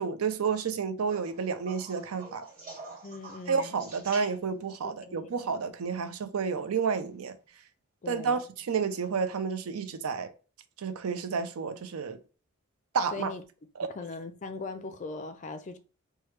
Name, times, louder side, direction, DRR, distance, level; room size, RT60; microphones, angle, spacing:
voice 1, 0.0-2.5 3.5-7.3 8.1-10.3 10.8-12.2 12.9-13.3, right 5 dB, 85° right, 0.5 m, -30 dB
sound 1, 1.1-4.7 6.9-7.4 9.0-9.1, right 3 dB, 40° right, 1.0 m, -47 dB
voice 2, 3.0-3.7 4.8-5.5 8.0-8.4 13.1-13.4 14.0-15.8, left 3 dB, 35° left, 0.3 m, -40 dB
3.2 x 2.2 x 3.1 m
head